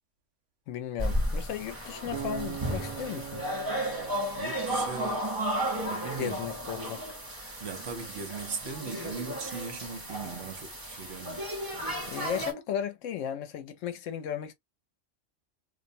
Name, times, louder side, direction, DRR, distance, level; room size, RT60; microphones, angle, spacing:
voice 1, 0.7-3.5 6.2-7.2 12.1-14.5, left 9 dB, 80° left, 0.9 m, -35 dB
sound 1, 1.0-12.5, equal, 20° right, 0.7 m, -34 dB
Acoustic guitar, 2.1-5.3, right 11 dB, 85° right, 1.0 m, -41 dB
voice 2, 4.4-5.3 5.8-6.4 7.6-11.5, right 6 dB, 60° right, 0.9 m, -39 dB
2.5 x 2.1 x 2.6 m
omnidirectional pair, 1.3 m